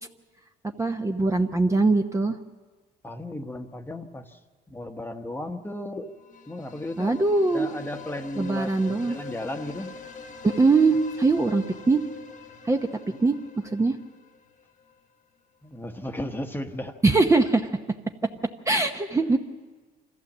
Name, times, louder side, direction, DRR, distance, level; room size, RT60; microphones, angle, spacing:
voice 1, 0.8-2.4 7.0-7.7 8.3-9.2 10.4-12.0 12.6-12.8 13.2-14.0 17.0-17.7 18.7-19.4, right 3 dB, 15° right, 4 dB, 0.9 m, -22 dB
voice 2, 3.0-4.2 4.7-6.1 6.5-7.1 7.5-9.9 15.6-16.9, left 1 dB, 10° left, 6 dB, 1.1 m, -35 dB
sound 1, 6.2-15.0, left 4 dB, 50° left, 1.2 m, -44 dB
25.0 x 15.0 x 7.3 m, 1.4 s
cardioid pair, 110°, 17 cm